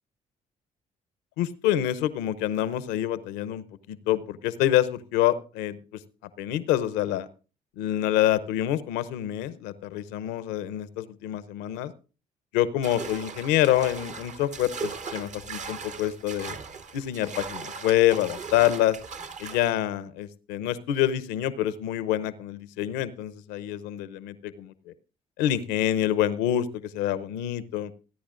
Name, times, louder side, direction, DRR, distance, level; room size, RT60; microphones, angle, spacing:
voice 1, 1.4-6.0 6.4-7.3 7.8-11.9 12.5-16.6 16.9-19.0 19.4-24.9 25.4-27.9, left 12 dB, 75° left, 15 dB, 0.7 m, -26 dB
sound 1, 12.8-19.7, right 5 dB, 45° right, 1.0 m, -38 dB
28.0 x 10.0 x 2.5 m, 0.36 s
hypercardioid pair, 50°, 18 cm